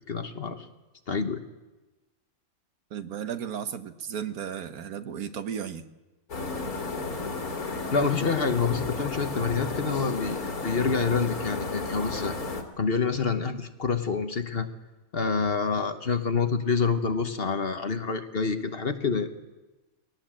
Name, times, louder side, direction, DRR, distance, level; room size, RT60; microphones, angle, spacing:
voice 1, 0.1-0.7 1.1-1.4 7.9-12.4 12.8-14.7 15.1-19.3, left 5 dB, 45° left, 7 dB, 1.2 m, -27 dB
voice 2, 2.9-5.8, right 8 dB, 80° right, 10 dB, 1.5 m, -34 dB
sound 1, 6.3-12.6, left 3 dB, 85° left, 2.6 m, -33 dB
21.0 x 18.5 x 7.5 m, 1.1 s
omnidirectional pair, 1.5 m